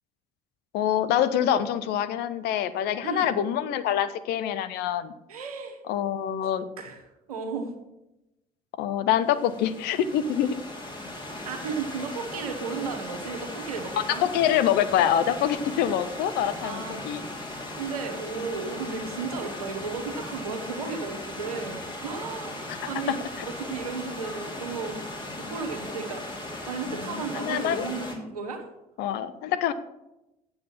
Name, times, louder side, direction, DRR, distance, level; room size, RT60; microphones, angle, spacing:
voice 1, 0.7-5.1 5.9-6.6 8.8-10.6 14.2-17.2 22.7-22.8 23.1-23.5 26.9-27.9 29.0-29.7, left 10 dB, 60° left, 12 dB, 0.7 m, -25 dB
voice 2, 3.0-3.4 5.3-5.8 6.4-6.5 6.8-7.0 7.3-7.7 11.4-14.2 16.6-17.1 17.7-25.0 25.3-26.3 26.7-28.7, right 5 dB, 85° right, 5 dB, 1.1 m, -34 dB
Stream / Liquid, 9.2-28.2, left 1 dB, 25° left, 2.5 m, -38 dB
7.9 x 7.7 x 5.9 m, 0.93 s
figure-of-eight pair, 55°, 19 cm